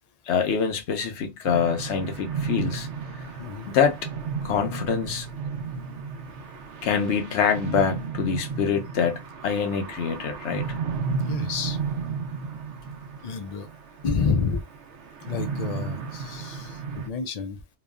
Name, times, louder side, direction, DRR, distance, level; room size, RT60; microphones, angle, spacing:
voice 1, 0.3-2.9 3.2-3.3 3.7-4.0 4.4-5.3 6.8-10.7, left 7 dB, 90° left, 1.0 m, -25 dB
sound 1, 1.5-17.1, right 5 dB, 90° right, 0.9 m, -33 dB
voice 2, 3.4-3.7 11.2-11.8 13.2-13.7 14.0-14.6 15.3-16.8 17.0-17.6, left 5 dB, 55° left, 0.4 m, -29 dB
3.0 x 2.1 x 2.3 m
omnidirectional pair, 1.1 m